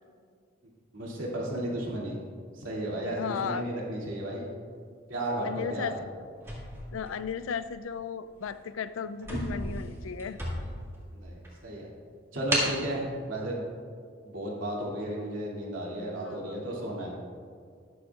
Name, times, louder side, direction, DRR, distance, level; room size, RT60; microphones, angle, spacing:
voice 1, 0.9-2.2 2.5-4.4 5.1-5.9 11.1-11.9 12.3-13.6 14.2-17.1, right 1 dB, 75° right, -4 dB, 2.6 m, -33 dB
voice 2, 3.2-3.7 5.4-6.1 6.9-10.4 16.2-16.6, left 6 dB, 85° left, 13 dB, 0.4 m, -35 dB
sound 1, 6.4-7.7 8.4-8.6 8.9-9.0 9.2-11.0 11.4-11.5 12.5-12.8, equal, 15° right, 2.0 m, -32 dB
12.5 x 11.5 x 2.4 m, 2.1 s
head